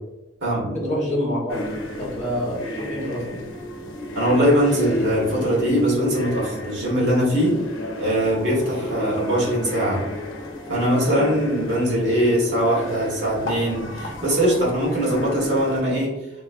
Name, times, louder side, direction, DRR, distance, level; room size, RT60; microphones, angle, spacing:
voice 1, 0.7-1.6 2.0-3.4, equal, 35° left, -5 dB, 1.4 m, -27 dB
sound 1, 1.5-15.8, left 1 dB, 80° left, 0.7 m, -33 dB
voice 2, 4.1-7.6 8.0-10.1 10.7-16.2, equal, 65° right, -4 dB, 1.4 m, -21 dB
3.5 x 3.0 x 2.4 m, 1.0 s
head